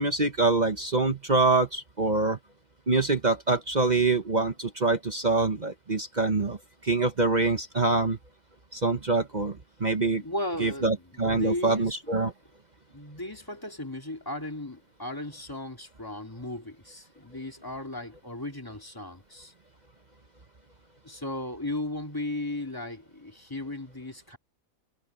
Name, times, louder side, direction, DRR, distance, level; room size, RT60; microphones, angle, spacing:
voice 1, 0.0-2.4 2.9-6.6 6.8-8.2 8.7-10.2 10.6-12.3, right 3 dB, 30° right, 1.0 m, -25 dB
voice 2, 10.2-12.0 12.9-19.5 21.0-24.4, left 1 dB, 15° left, 2.4 m, -36 dB
omnidirectional pair, 1.7 m